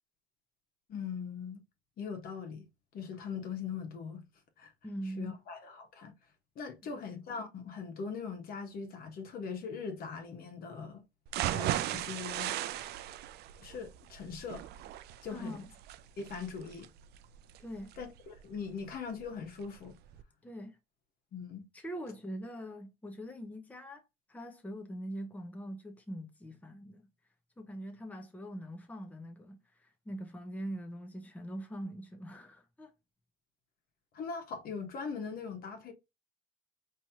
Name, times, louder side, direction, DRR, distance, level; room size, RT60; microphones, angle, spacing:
voice 1, 0.9-1.6 2.0-2.7 2.9-4.2 4.6-4.7 5.2-6.1 6.5-11.0 11.5-12.6 13.6-14.6 15.2-15.6 16.2-16.9 18.0-20.0 21.3-21.7 34.1-35.9, left 5 dB, 60° left, 1.3 m, -41 dB
voice 2, 4.8-5.4 6.9-7.0 15.3-15.7 17.6-17.9 20.4-20.8 21.7-24.0 24.3-27.1 27.6-32.9, equal, 10° left, 0.8 m, -43 dB
sound 1, 11.3-19.2 19.6-19.7 20.1-20.2, right 13 dB, 70° right, 0.4 m, -37 dB
4.3 x 3.1 x 2.8 m
cardioid pair, 110°, 17 cm